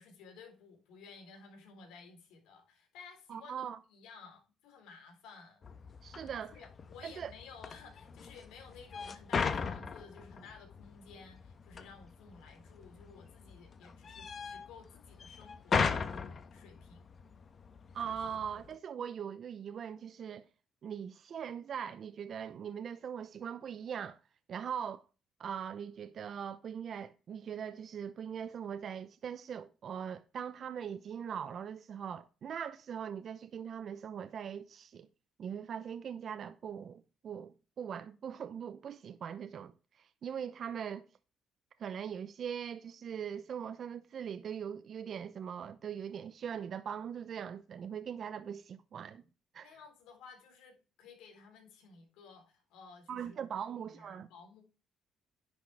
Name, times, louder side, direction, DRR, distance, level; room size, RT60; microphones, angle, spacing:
voice 1, 0.0-5.7 6.3-17.2 24.6-24.8 49.6-54.6, left 5 dB, 85° left, 4.1 m, -55 dB
voice 2, 3.3-3.8 6.0-6.6 7.0-7.3 17.9-20.5 20.8-24.2 24.5-25.1 25.4-35.1 35.4-41.1 41.8-49.2 49.5-49.7 53.1-54.3, right 8 dB, 45° right, 0.7 m, -41 dB
sound 1, 5.6-18.8, left 5 dB, 35° left, 1.1 m, -39 dB
10.5 x 6.3 x 4.7 m
cardioid pair, 125°, 0 cm